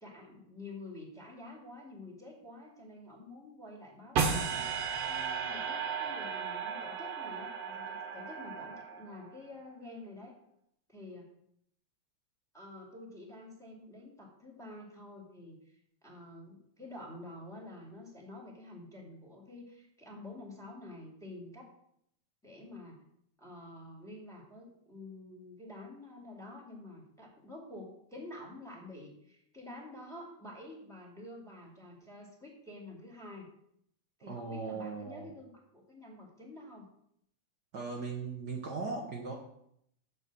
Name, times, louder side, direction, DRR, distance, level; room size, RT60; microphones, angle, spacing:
voice 1, 0.0-10.3 10.9-11.3 12.5-21.7 22.4-23.0 23.4-33.5 34.2-36.9, left 2 dB, ahead, -1 dB, 1.8 m, -49 dB
sound 1, 4.2-9.4, right 6 dB, 60° right, 1.9 m, -35 dB
voice 2, 34.3-35.3 37.7-39.3, right 4 dB, 80° right, -1 dB, 0.9 m, -38 dB
7.7 x 6.4 x 6.1 m, 0.72 s
omnidirectional pair, 3.6 m